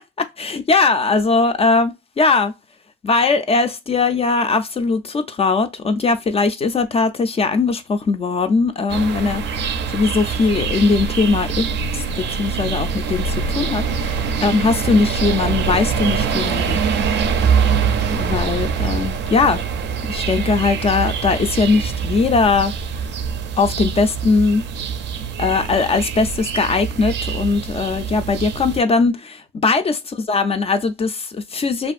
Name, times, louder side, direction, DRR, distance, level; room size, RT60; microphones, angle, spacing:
voice 1, 0.2-2.5 3.0-16.8 18.1-19.6 20.1-22.7 23.6-24.7 25.4-30.0 30.3-31.9, left 4 dB, 30° left, 0.4 m, -20 dB
sound 1, 8.9-28.8, right 6 dB, 60° right, 0.4 m, -23 dB
2.4 x 2.4 x 2.4 m
cardioid pair, 90°, 20 cm